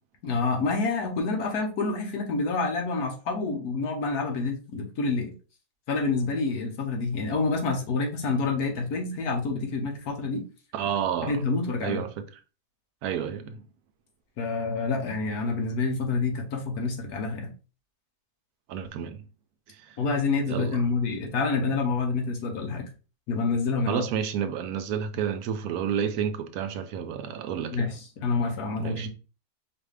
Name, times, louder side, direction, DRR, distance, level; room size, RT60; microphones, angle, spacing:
voice 1, 0.2-5.3 5.9-10.4 11.3-12.0 14.4-17.5 20.0-22.9 23.3-24.0 27.7-29.1, left 4 dB, 80° left, 1.5 m, -28 dB
voice 2, 10.7-11.4 11.8-12.1 13.0-13.6 18.7-19.2 19.8-20.0 20.5-20.8 23.9-27.9 28.8-29.1, right 8 dB, 80° right, 1.1 m, -30 dB
4.6 x 2.6 x 3.3 m
omnidirectional pair, 1.6 m